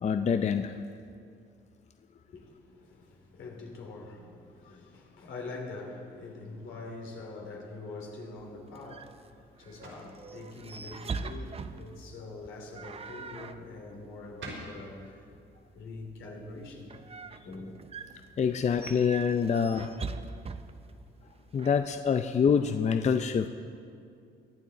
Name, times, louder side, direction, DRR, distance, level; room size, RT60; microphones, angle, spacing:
voice 1, 0.0-0.7 18.4-20.0 21.5-23.5, left 6 dB, 35° left, 8 dB, 0.5 m, -26 dB
voice 2, 2.3-15.4 15.7-16.9 17.4-17.8, left 3 dB, 75° left, 0 dB, 2.9 m, -44 dB
sound 1, 8.4-21.7, right 4 dB, 30° right, 0.6 m, -43 dB
sound 2, 8.6-17.8, right 2 dB, 75° right, 3.7 m, -53 dB
22.5 x 9.3 x 4.0 m, 2.3 s
cardioid pair, 90°, 20 cm